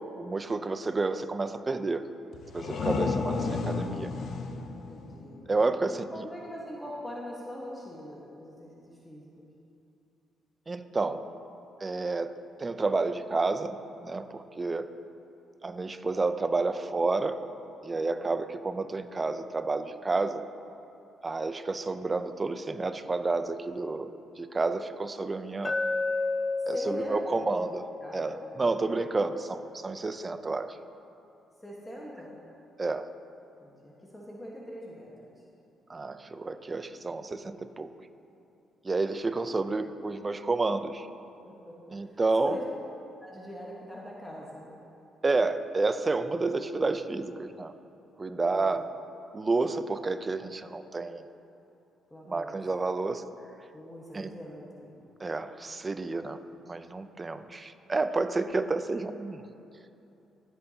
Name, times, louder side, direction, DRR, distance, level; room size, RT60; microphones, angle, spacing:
voice 1, 0.2-2.1 2.5-4.1 5.5-6.3 10.7-11.2 11.8-14.9 15.6-17.4 17.8-20.4 21.2-25.8 26.7-27.8 28.1-30.8 32.8-33.1 35.9-37.9 38.8-41.1 41.9-42.6 45.2-47.7 48.2-48.9 49.3-51.3 52.3-53.2 54.1-54.3 55.2-56.4 56.7-59.5, right 3 dB, 25° right, 10 dB, 0.5 m, -30 dB
sound 1, 2.3-5.9, left 4 dB, 65° left, 0.8 m, -32 dB
voice 2, 4.7-5.4 6.1-9.5 17.9-18.3 26.7-27.5 28.0-28.8 31.6-32.4 33.6-35.4 41.4-42.6 43.2-44.7 48.4-48.9 52.1-52.6 53.7-55.0, equal, 10° left, -4 dB, 1.4 m, -43 dB
Glass, 25.7-29.8, left 3 dB, 30° left, 0.6 m, -33 dB
18.5 x 7.9 x 2.9 m, 2.9 s
cardioid pair, 90°, 0 cm